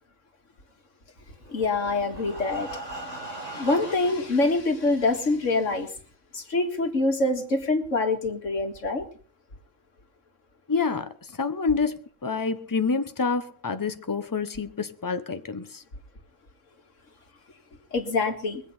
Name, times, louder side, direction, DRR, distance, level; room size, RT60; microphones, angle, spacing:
Breathing, 1.4-4.3 5.1-5.2 5.5-5.6 6.1-6.2, right 2 dB, 30° right, 2.0 m, -39 dB
voice 1, 1.5-5.9 6.3-9.1 17.9-18.6, left 2 dB, 80° left, 2.2 m, -25 dB
voice 2, 10.7-15.8, left 4 dB, 20° left, 0.8 m, -28 dB
21.5 x 8.4 x 5.5 m
omnidirectional pair, 1.3 m